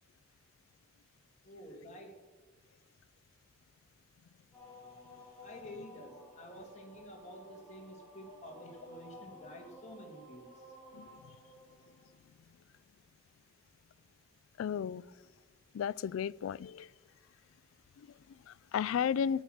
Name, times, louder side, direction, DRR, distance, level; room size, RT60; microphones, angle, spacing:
voice 1, 1.4-2.2 5.4-10.8, equal, 35° left, 2.3 m, -50 dB
sound 1, 4.5-12.2, left 1 dB, 10° left, 3.0 m, -54 dB
voice 2, 10.9-11.4 14.6-15.1 15.7-16.9 18.0-19.4, left 8 dB, 90° left, 0.3 m, -34 dB
13.5 x 9.2 x 6.3 m
head